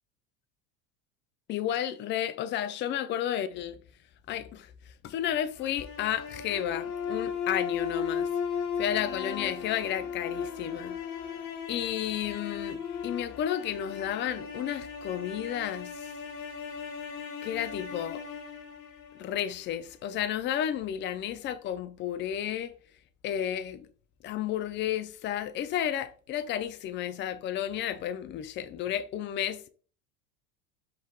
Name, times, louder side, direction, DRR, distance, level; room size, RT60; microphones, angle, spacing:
voice 1, 1.5-3.8 4.3-4.7 5.0-8.3 8.8-11.0 11.7-16.1 17.4-18.2 19.2-22.7 23.2-23.9 24.2-29.7, left 10 dB, 30° left, 0.4 m, -32 dB
sound 1, 5.6-19.7, left 6 dB, 55° left, 1.0 m, -36 dB
5.4 x 3.2 x 2.3 m
hypercardioid pair, 80°, 40 cm